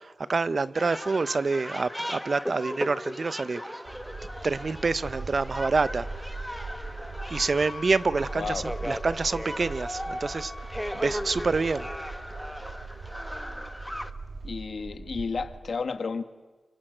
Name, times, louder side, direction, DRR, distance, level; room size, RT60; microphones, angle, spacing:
voice 1, 0.0-3.8 4.4-6.3 7.3-10.5 10.9-11.9, right 4 dB, 55° right, 0.8 m, -27 dB
sound 1, 0.7-14.1, equal, ahead, 1.2 m, -37 dB
sound 2, 3.9-15.6, right 3 dB, 75° right, 3.2 m, -40 dB
Wind instrument woodwind instrument, 7.2-12.2, left 3 dB, 60° left, 5.5 m, -47 dB
voice 2, 8.3-8.7 14.4-16.2, left 4 dB, 75° left, 1.6 m, -32 dB
30.0 x 25.5 x 7.9 m
wide cardioid pair, 80°, 0 cm